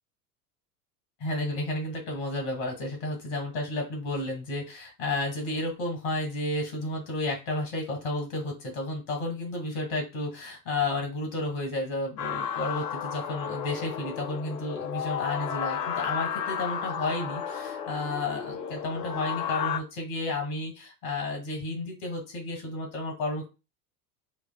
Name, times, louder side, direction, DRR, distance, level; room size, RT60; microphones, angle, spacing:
voice 1, 1.2-23.5, left 2 dB, 55° left, 2 dB, 2.0 m, -32 dB
sound 1, 12.2-19.8, left 8 dB, 85° left, 0.6 m, -33 dB
5.2 x 2.4 x 2.2 m, 0.28 s
hypercardioid pair, 80°, 48 cm